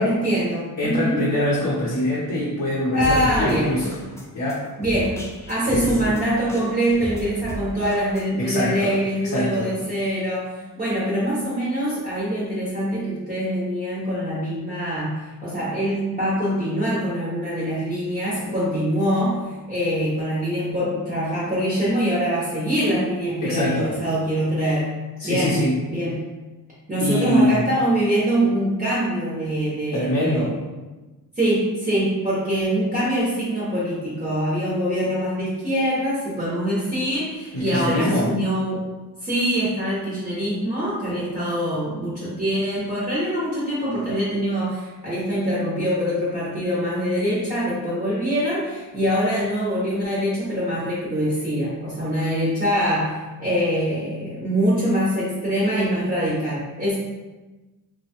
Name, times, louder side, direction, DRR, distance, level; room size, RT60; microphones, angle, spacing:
voice 1, 0.0-1.3 2.9-3.8 4.8-10.5 10.8-24.9 25.2-26.2 26.9-30.5 31.4-38.8 39.2-57.0, equal, 20° right, -8 dB, 0.7 m, -24 dB
voice 2, 0.8-3.9 4.3-4.6 5.7-6.1 8.4-8.9 9.2-9.7 23.4-23.9 25.2-25.7 27.0-27.6 29.9-30.5 37.5-38.3, left 1 dB, 50° left, -7 dB, 0.7 m, -23 dB
sound 1, 2.9-8.3, equal, 10° left, 0.3 m, -34 dB
3.0 x 2.2 x 2.8 m, 1.2 s
wide cardioid pair, 125°, 39 cm